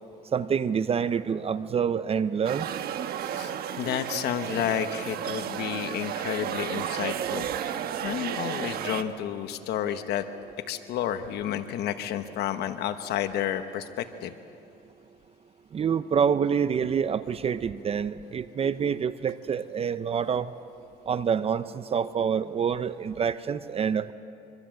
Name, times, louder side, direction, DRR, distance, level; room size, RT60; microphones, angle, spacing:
voice 1, 0.3-2.7 15.7-20.5 21.1-24.1, right 7 dB, 35° right, 13 dB, 0.6 m, -27 dB
sound 1, 2.4-9.0, right 9 dB, 65° right, 1.2 m, -32 dB
voice 2, 3.2-7.5 8.0-10.2 10.7-14.3, left 10 dB, 75° left, 9 dB, 1.1 m, -31 dB
25.0 x 24.0 x 7.7 m, 2.6 s
cardioid pair, 110°, 17 cm